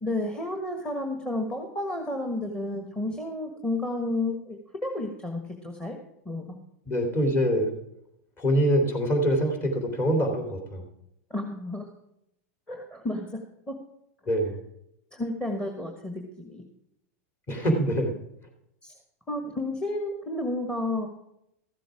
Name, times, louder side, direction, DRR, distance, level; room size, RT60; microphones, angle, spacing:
voice 1, 0.0-6.0 6.2-6.6 11.3-11.9 12.7-13.4 13.7-13.8 15.1-16.6 18.8-18.9 19.3-21.1, left 2 dB, 10° left, 3 dB, 1.5 m, -31 dB
voice 2, 6.9-7.7 8.4-10.9 14.3-14.6 17.5-18.1, equal, 30° left, 4 dB, 3.0 m, -24 dB
14.0 x 7.7 x 4.9 m, 0.79 s
hypercardioid pair, 120°, 8 cm